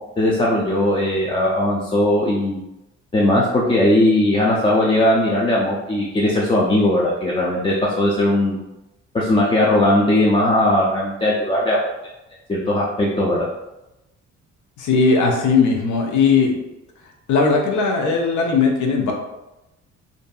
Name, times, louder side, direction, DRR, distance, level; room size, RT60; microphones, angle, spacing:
voice 1, 0.2-2.6 3.1-8.6 9.1-11.8 12.5-13.4, left 1 dB, 20° left, -5 dB, 0.4 m, -18 dB
voice 2, 14.8-16.5 17.3-19.1, left 4 dB, 75° left, 2 dB, 0.6 m, -18 dB
2.6 x 2.5 x 2.3 m, 0.95 s
cardioid pair, 90°, 30 cm